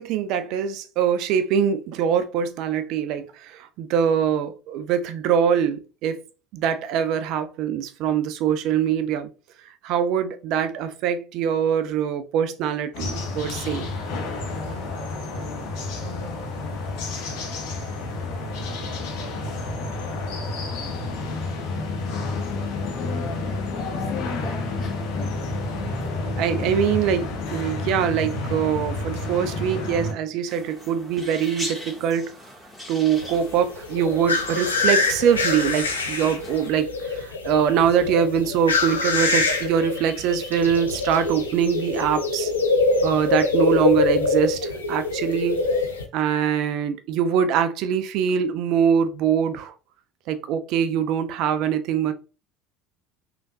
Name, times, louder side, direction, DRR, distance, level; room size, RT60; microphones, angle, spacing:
voice 1, 0.0-6.2 6.5-9.3 9.8-13.9 26.4-32.3 32.9-42.5 43.0-45.7 46.1-49.7 50.3-52.1, right 8 dB, 55° right, 0.4 m, -23 dB
sound 1, 12.9-30.1, left 2 dB, 60° left, 0.9 m, -30 dB
voice 2, 18.2-18.7 20.9-21.5 23.0-25.6, left 4 dB, 40° left, 1.4 m, -39 dB
sound 2, 30.5-36.7, left 1 dB, 10° left, 1.6 m, -40 dB
sound 3, 33.2-46.0, left 3 dB, 80° left, 0.4 m, -24 dB
3.4 x 2.9 x 2.6 m
figure-of-eight pair, 65°, 0 cm